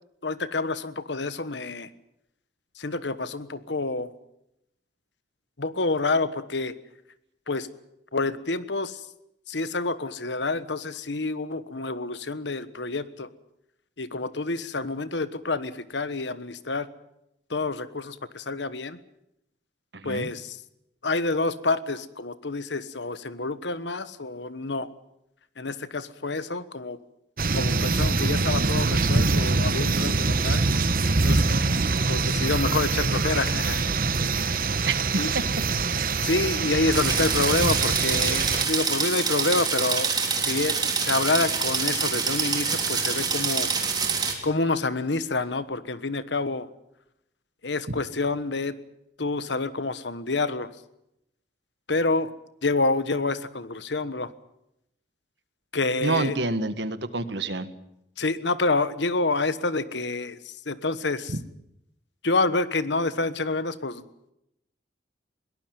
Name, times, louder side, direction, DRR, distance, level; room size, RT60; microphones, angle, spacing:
voice 1, 0.2-1.9 2.8-4.1 5.6-6.7 7.5-7.7 8.1-9.1 9.5-13.3 14.0-16.9 17.5-19.0 20.0-20.6 21.0-24.9 25.6-27.0 27.5-30.6 31.2-31.4 32.1-33.8 35.2-35.3 36.2-43.7 44.4-46.7 47.6-48.8 49.2-50.7 51.9-52.3 52.6-54.3 55.7-56.4 58.2-61.3 62.2-64.0, left 3 dB, 80° left, 14 dB, 1.3 m, -28 dB
voice 2, 19.9-20.3 34.9-35.0 56.0-57.7, right 3 dB, 75° right, 12 dB, 1.6 m, -27 dB
sound 1, 27.4-38.7, right 3 dB, 50° right, 1.0 m, -24 dB
sound 2, 36.9-44.3, right 5 dB, 25° right, 3.3 m, -26 dB
22.0 x 18.5 x 9.3 m, 0.83 s
head